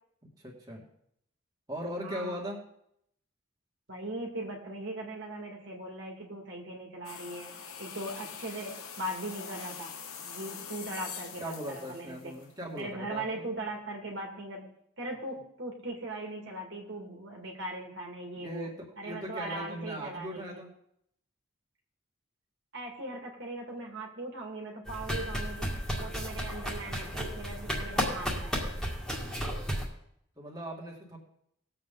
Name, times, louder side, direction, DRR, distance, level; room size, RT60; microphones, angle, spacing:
voice 1, 0.4-0.8 1.7-2.6 11.4-13.5 18.3-18.7 19.0-20.7 30.4-31.2, equal, 15° right, -3 dB, 2.3 m, -39 dB
voice 2, 2.0-2.4 3.9-9.9 10.2-12.3 12.8-14.6 15.0-18.7 19.0-20.4 22.7-25.7 26.0-28.8, right 1 dB, 55° right, 0 dB, 2.2 m, -39 dB
sound 1, 7.0-12.8, left 7 dB, 85° left, 1.4 m, -44 dB
sound 2, 24.9-29.8, equal, ahead, 2.1 m, -33 dB
19.5 x 7.6 x 3.9 m, 0.73 s
head